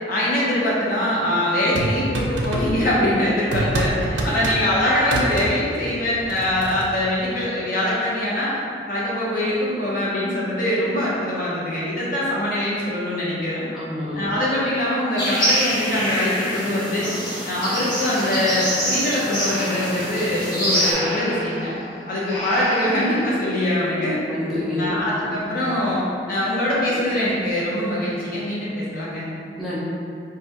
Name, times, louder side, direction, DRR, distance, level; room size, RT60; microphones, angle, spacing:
voice 1, 0.1-8.6 8.9-13.6 14.1-17.1 17.4-21.7 22.1-24.2 24.8-29.3, left 1 dB, 50° left, -7 dB, 0.7 m, -23 dB
sound 1, 1.7-3.1 3.5-4.7 5.0-5.5 6.0-6.9, right 2 dB, 85° right, 0.4 m, -26 dB
voice 2, 13.7-14.4 24.3-25.5 29.6-29.8, left 1 dB, ahead, -10 dB, 0.5 m, -29 dB
sound 2, 15.2-20.9, equal, 25° left, 1.4 m, -25 dB
Breathing, 17.9-23.5, equal, 75° left, 0.9 m, -32 dB
3.3 x 2.3 x 2.7 m, 2.4 s
head